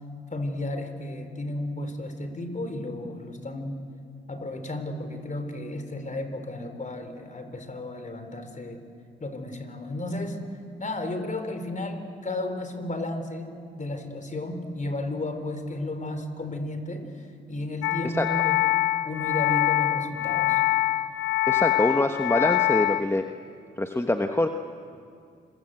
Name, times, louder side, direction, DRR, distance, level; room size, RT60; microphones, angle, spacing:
voice 1, 0.3-3.8 4.3-8.8 9.2-10.4 10.8-18.6 19.0-20.6, left 1 dB, 35° left, 7 dB, 4.3 m, -33 dB
sound 1, 17.8-23.0, left 15 dB, 85° left, 0.7 m, -24 dB
voice 2, 21.5-23.2 23.8-24.5, left 1 dB, 10° left, 5 dB, 1.3 m, -24 dB
26.0 x 23.5 x 8.0 m, 2.4 s
supercardioid pair, 55°, 21 cm